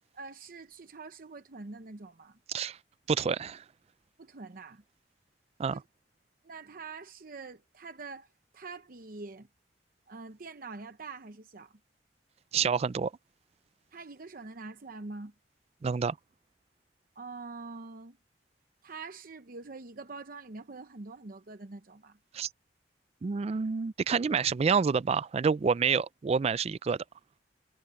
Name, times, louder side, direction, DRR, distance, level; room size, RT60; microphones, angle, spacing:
voice 1, 0.1-2.4 4.2-4.8 5.7-5.8 6.4-8.3 8.5-9.5 10.1-11.8 13.9-15.3 17.2-18.2 18.8-22.2, right 3 dB, 55° right, 0.8 m, -44 dB
voice 2, 3.1-3.6 5.6-5.8 12.5-13.1 15.8-16.2 22.3-22.5 23.2-27.0, right 6 dB, 35° right, 0.3 m, -28 dB
head